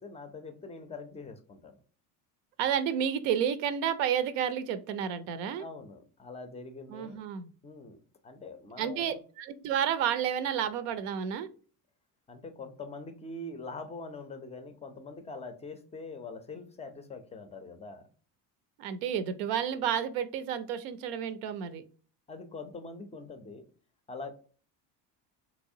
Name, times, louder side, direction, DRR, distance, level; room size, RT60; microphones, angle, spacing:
voice 1, 0.0-1.8 5.6-7.2 7.6-8.0 8.2-9.2 12.3-18.0 22.3-23.6 24.1-24.3, left 3 dB, 15° left, 8 dB, 0.4 m, -43 dB
voice 2, 2.6-5.7 6.9-7.5 8.8-11.5 18.8-21.8, right 8 dB, 75° right, 12 dB, 0.6 m, -31 dB
3.4 x 2.9 x 2.6 m, 0.40 s
supercardioid pair, 95°, 46 cm